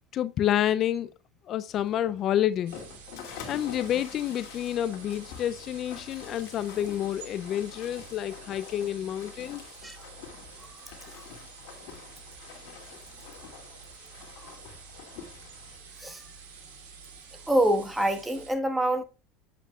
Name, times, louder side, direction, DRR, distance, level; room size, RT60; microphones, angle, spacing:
voice 1, 0.1-1.1 1.5-2.8 3.5-9.6, left 11 dB, 45° left, 0.5 m, -29 dB
sound 1, 1.7-15.8, left 7 dB, 70° left, 2.4 m, -47 dB
sound 2, 2.7-18.5, right 5 dB, 80° right, 2.8 m, -49 dB
voice 2, 17.5-19.0, right 1 dB, 10° right, 1.4 m, -26 dB
8.3 x 7.8 x 2.4 m
supercardioid pair, 100°, 0 cm